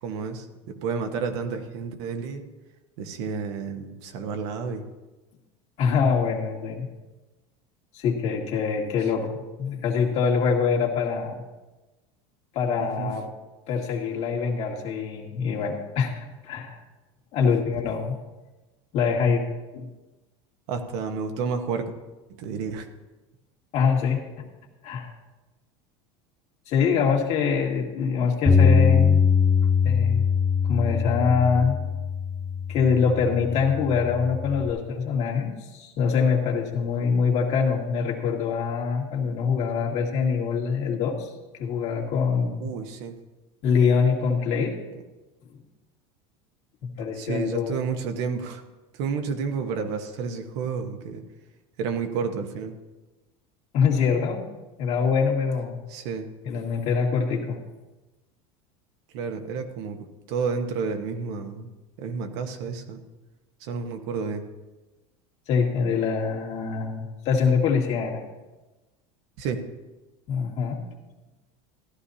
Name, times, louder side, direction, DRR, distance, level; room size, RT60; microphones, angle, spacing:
voice 1, 0.0-2.4 3.0-4.8 9.2-9.3 12.8-13.1 17.4-17.5 20.7-21.9 22.4-22.9 42.6-43.2 47.1-48.6 48.9-51.2 51.8-52.8 55.9-56.3 59.1-61.7 62.0-63.0 63.6-64.4 69.4-69.6, right 5 dB, 70° right, 5 dB, 1.2 m, -30 dB
voice 2, 5.8-6.9 7.9-11.4 12.5-13.2 13.7-16.8 17.3-18.2 18.9-19.5 19.7-19.9 23.7-24.2 24.8-25.1 26.7-29.3 29.8-30.2 30.6-31.8 32.7-41.3 41.6-42.6 43.6-44.8 46.8-47.7 53.7-54.4 54.8-55.8 56.4-57.6 65.5-68.2 70.3-70.8, left 6 dB, 50° left, -1 dB, 2.0 m, -24 dB
Bass guitar, 28.5-34.7, left 6 dB, 5° right, 1.3 m, -22 dB
15.0 x 11.5 x 2.8 m, 1.1 s
supercardioid pair, 125°, 14 cm